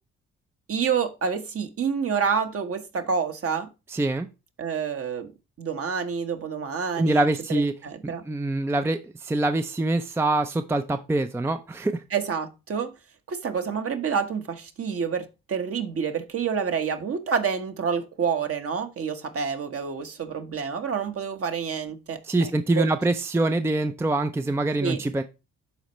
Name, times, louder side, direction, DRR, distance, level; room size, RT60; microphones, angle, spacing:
voice 1, 0.7-3.7 4.6-5.3 5.6-8.2 12.1-12.9 13.3-22.9 24.8-25.0, right 6 dB, 50° right, 1.3 m, -28 dB
voice 2, 3.9-4.3 7.0-7.7 8.0-12.0 22.3-25.2, right 2 dB, 10° right, 0.5 m, -24 dB
11.5 x 4.3 x 3.1 m
cardioid pair, 90°, 30 cm